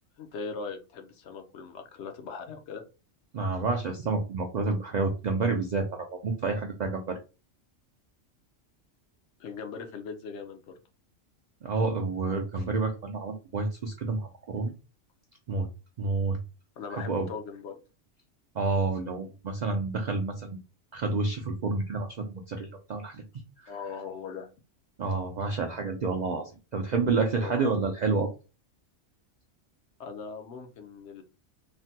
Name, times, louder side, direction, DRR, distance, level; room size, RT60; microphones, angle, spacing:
voice 1, 0.2-2.8 9.4-10.8 16.8-17.8 23.7-24.5 27.4-27.8 30.0-31.2, left 5 dB, 70° left, 5 dB, 0.9 m, -39 dB
voice 2, 3.3-7.2 11.6-14.7 15.5-15.7 16.0-16.4 17.0-17.3 18.5-20.6 20.9-23.2 23.6-23.8 25.0-28.3, right 3 dB, 65° right, 3 dB, 0.4 m, -29 dB
3.2 x 2.1 x 2.7 m, 0.31 s
omnidirectional pair, 1.2 m